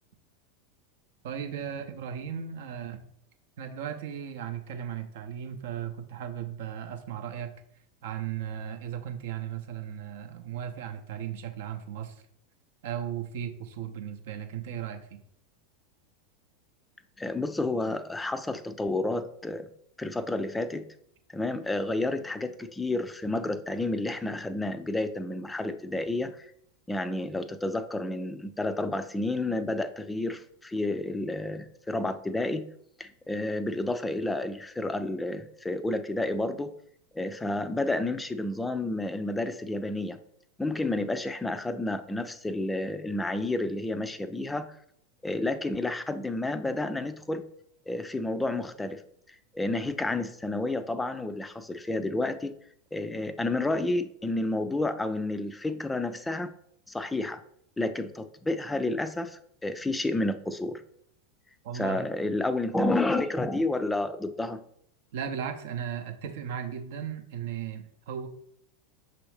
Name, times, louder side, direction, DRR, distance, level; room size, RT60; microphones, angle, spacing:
voice 1, 1.2-3.0 3.6-7.5 8.0-12.2 12.8-15.2 61.6-62.0 65.1-68.3, right 9 dB, 60° right, 7 dB, 0.5 m, -36 dB
voice 2, 17.2-19.7 20.0-20.9 21.3-26.5 26.9-32.7 33.0-36.7 37.1-40.2 40.6-44.8 45.2-47.4 47.9-49.0 49.5-52.5 52.9-56.5 56.9-57.4 57.8-60.8 61.7-64.6, left 2 dB, 10° left, 11 dB, 0.4 m, -30 dB
6.1 x 2.6 x 3.2 m, 0.69 s
figure-of-eight pair, 85°, 0 cm